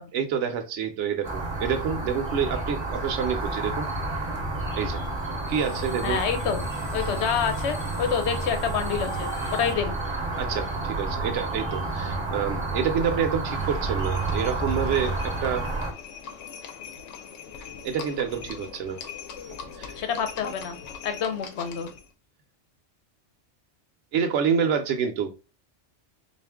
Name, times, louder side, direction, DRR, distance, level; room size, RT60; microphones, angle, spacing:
voice 1, 0.1-3.9 4.8-5.0 5.5-6.2 10.4-15.7 17.8-19.0 19.8-19.9 24.1-25.3, right 7 dB, 75° right, 5 dB, 0.9 m, -27 dB
sound 1, 1.2-15.9, right 2 dB, 30° right, 0.6 m, -30 dB
sound 2, 3.4-9.8, left 3 dB, 45° left, 0.5 m, -44 dB
voice 2, 6.0-6.6 6.9-9.9 20.0-20.8 21.0-21.9, left 7 dB, 70° left, 7 dB, 0.9 m, -27 dB
Livestock farm animals working animals, 14.0-22.1, left 6 dB, 85° left, 1.0 m, -41 dB
3.8 x 2.5 x 3.4 m, 0.31 s
omnidirectional pair, 1.2 m